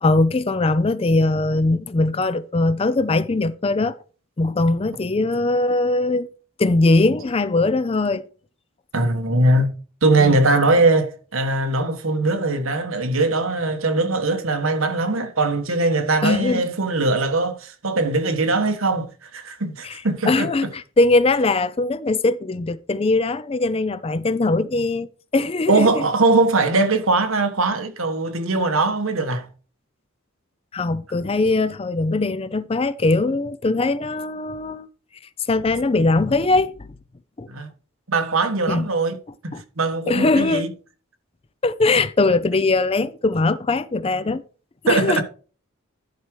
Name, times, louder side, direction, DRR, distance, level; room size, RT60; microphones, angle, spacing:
voice 1, 0.0-4.0 4.4-6.3 6.6-8.2 10.2-10.4 16.2-16.6 19.8-25.1 25.3-26.0 30.7-34.9 35.5-36.9 37.4-37.5 38.7-38.9 39.5-39.6 40.1-40.7 41.6-44.4 44.9-45.2, left 2 dB, 25° left, 0.4 m, -21 dB
voice 2, 8.9-9.7 10.0-20.5 25.7-29.5 37.5-37.7 38.1-39.2 39.4-40.7 44.9-45.2, right 2 dB, 75° right, 1.3 m, -21 dB
11.0 x 4.8 x 4.6 m
head